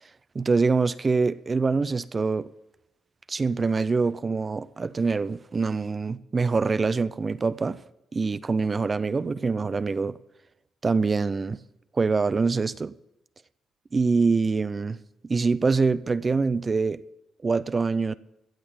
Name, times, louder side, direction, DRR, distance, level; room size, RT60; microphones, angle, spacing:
voice 1, 0.4-2.5 3.3-7.8 8.1-10.2 10.8-11.6 11.9-12.9 13.9-15.0 15.2-17.0 17.4-18.1, right 4 dB, 30° right, 0.4 m, -24 dB
15.5 x 7.0 x 7.8 m
cardioid pair, 90°, 0 cm